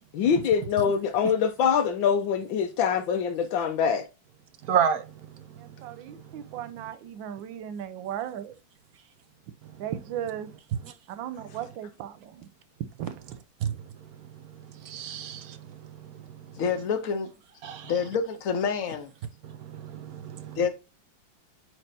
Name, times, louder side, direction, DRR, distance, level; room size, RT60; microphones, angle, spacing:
voice 1, 0.1-4.0, left 7 dB, 90° left, 1.5 m, -24 dB
voice 2, 4.6-6.9 9.6-9.7 10.7-10.9 11.4-11.6 13.6-13.8 14.2-16.6 17.6-17.9 19.4-20.6, right 8 dB, 60° right, 1.1 m, -33 dB
voice 3, 5.6-8.5 9.8-10.5 11.2-12.5 13.0-13.1, right 10 dB, 80° right, 1.5 m, -36 dB
voice 4, 16.6-17.3 17.8-19.1 20.6-20.7, left 6 dB, 50° left, 1.4 m, -27 dB
8.8 x 4.6 x 2.8 m
omnidirectional pair, 2.1 m